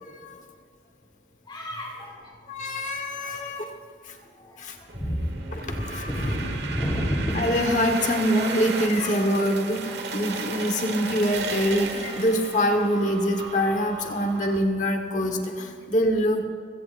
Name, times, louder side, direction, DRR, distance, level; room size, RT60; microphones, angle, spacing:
voice 1, 0.0-0.4 2.5-3.7 4.0-4.2 4.6-4.8 5.5-6.4 7.3-16.4, equal, 40° left, 4 dB, 1.3 m, -25 dB
voice 2, 1.5-2.2 3.2-3.5 4.2-5.2 5.7-7.4 9.0-9.1, equal, 25° left, -2 dB, 3.6 m, -30 dB
sound 1, 4.9-14.6, right 4 dB, 70° right, 1.4 m, -35 dB
26.0 x 16.0 x 2.6 m, 2.2 s
head